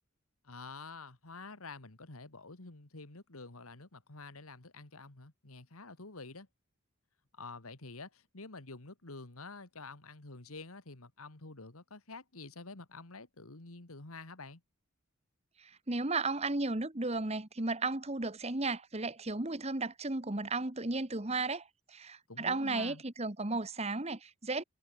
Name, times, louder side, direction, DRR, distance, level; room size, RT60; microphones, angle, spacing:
voice 1, 0.4-6.5 7.3-14.6 22.3-23.0, left 3 dB, 85° left, 2.2 m, -48 dB
voice 2, 15.6-24.6, right 3 dB, 30° right, 1.4 m, -34 dB
head